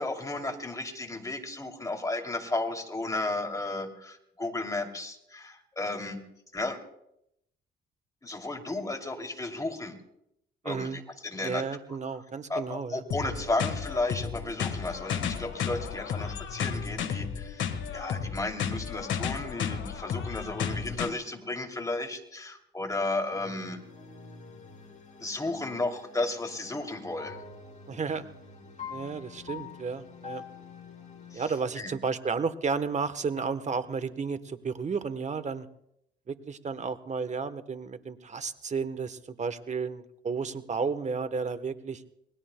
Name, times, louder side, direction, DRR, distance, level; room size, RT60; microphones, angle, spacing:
voice 1, 0.0-6.2 6.5-6.8 8.2-10.0 10.6-11.6 12.5-23.8 25.2-27.4 31.3-31.4 31.8-31.9, left 2 dB, 15° left, 3 dB, 2.8 m, -33 dB
voice 2, 10.6-11.0 11.4-13.0 27.9-28.3 28.9-30.4 31.3-35.7 36.3-42.0, right 5 dB, 35° right, 12 dB, 1.1 m, -32 dB
sound 1, 13.1-21.1, left 7 dB, 70° left, 1.5 m, -33 dB
sound 2, 23.3-31.4, left 5 dB, 35° left, 5.1 m, -46 dB
28.0 x 20.0 x 2.2 m, 0.78 s
cardioid pair, 90°, 20 cm